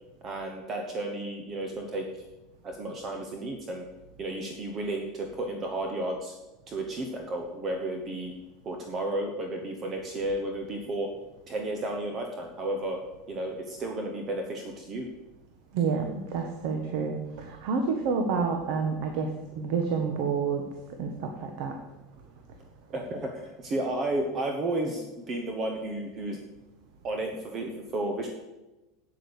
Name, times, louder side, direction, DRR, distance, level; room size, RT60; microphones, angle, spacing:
voice 1, 0.2-2.1 2.6-3.8 4.2-6.3 6.7-8.3 8.6-11.1 11.5-13.0 13.3-15.1 22.9-26.4 27.0-28.3, right 1 dB, 25° right, 3 dB, 1.0 m, -32 dB
voice 2, 15.7-19.3 19.6-20.6 21.0-21.7, right 5 dB, 55° right, 4 dB, 1.2 m, -29 dB
8.6 x 7.9 x 7.1 m, 1.1 s
supercardioid pair, 170°, 0 cm